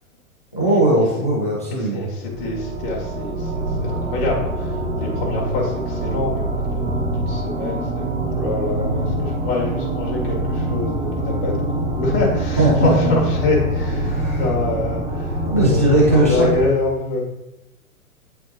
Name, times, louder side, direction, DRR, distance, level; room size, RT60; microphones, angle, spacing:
voice 1, 0.5-2.1 12.6-13.1 14.0-14.4 15.4-16.5, right 1 dB, 10° left, -7 dB, 0.3 m, -18 dB
voice 2, 1.7-17.2, left 3 dB, 40° left, -2 dB, 2.0 m, -25 dB
sound 1, 2.3-16.6, right 1 dB, 15° right, 1.1 m, -25 dB
10.0 x 3.8 x 2.6 m, 0.94 s
figure-of-eight pair, 110°, 44 cm